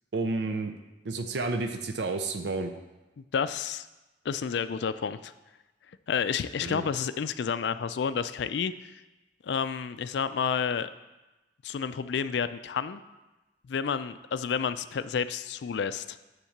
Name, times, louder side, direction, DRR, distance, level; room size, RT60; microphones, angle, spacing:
voice 1, 0.1-0.7 1.0-2.7 6.6-6.8, right 3 dB, 70° right, 6 dB, 0.5 m, -30 dB
voice 2, 3.2-3.9 4.2-5.3 6.1-8.9 9.4-10.9 11.6-13.0 13.7-16.2, left 6 dB, 70° left, 13 dB, 0.3 m, -30 dB
9.9 x 3.7 x 7.1 m, 1.1 s
head